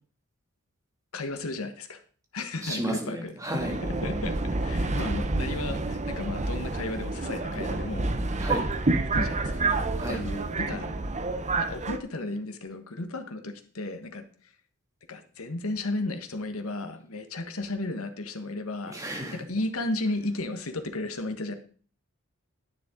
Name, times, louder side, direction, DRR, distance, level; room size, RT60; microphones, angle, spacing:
voice 1, 1.1-2.0 2.3-8.1 9.1-9.6 10.1-11.0 11.6-14.2 15.1-19.0 19.3-21.5, left 2 dB, 70° left, 7 dB, 1.4 m, -34 dB
voice 2, 2.6-3.7 8.4-8.6 10.0-10.2 18.9-19.4, equal, 15° right, 1 dB, 2.5 m, -32 dB
Subway metro underground, 3.6-12.0, right 2 dB, 30° right, 0.8 m, -29 dB
10.0 x 9.6 x 3.8 m, 0.41 s
head